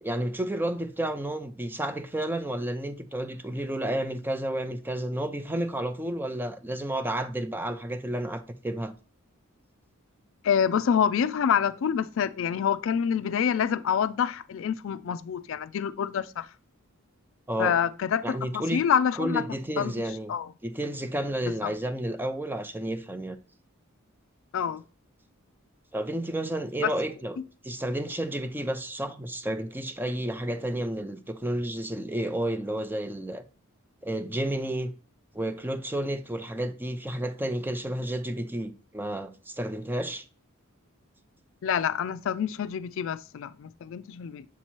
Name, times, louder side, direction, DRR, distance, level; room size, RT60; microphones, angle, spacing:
voice 1, 0.0-8.9 17.5-17.8 18.2-18.8 19.2-20.3 20.6-23.4 25.9-27.4 27.6-33.4 34.0-34.9 35.3-40.2, right 1 dB, 10° right, 0.5 m, -31 dB
voice 2, 10.4-16.5 17.6-19.4 19.8-19.9 20.3-20.5 21.6-21.7 24.5-24.8 26.8-26.9 41.6-44.5, left 8 dB, 65° left, 0.3 m, -27 dB
7.2 x 3.0 x 4.4 m
head